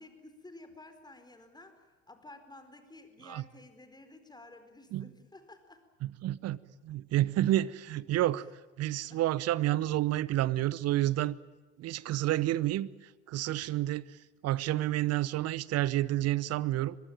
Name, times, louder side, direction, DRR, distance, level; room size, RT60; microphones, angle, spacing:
voice 1, 0.0-5.8 9.1-9.2 13.5-13.7, left 2 dB, 10° left, 4.6 m, -53 dB
voice 2, 6.0-6.6 6.8-8.5 8.8-11.3 11.8-14.0 14.4-17.0, right 14 dB, 40° right, 0.9 m, -29 dB
24.5 x 21.5 x 9.1 m
figure-of-eight pair, 70°, 37 cm